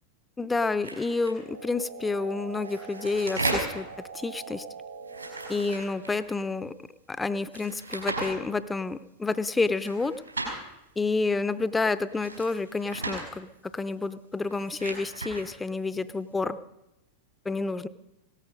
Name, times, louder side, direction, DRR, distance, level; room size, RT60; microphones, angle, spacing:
voice 1, 0.4-3.9 4.1-4.7 5.5-6.7 7.1-10.2 11.0-16.6 17.5-17.9, left 3 dB, 10° left, 14 dB, 0.6 m, -29 dB
sound 1, 0.8-1.3 2.5-3.8 5.0-6.3 7.5-8.3 9.7-10.6 12.1-13.2 14.4-15.4, right 2 dB, 85° right, 5.2 m, -35 dB
sound 2, 1.1-6.0, right 5 dB, 70° right, 1.8 m, -44 dB
18.0 x 13.5 x 5.2 m, 0.94 s
figure-of-eight pair, 90°, 0 cm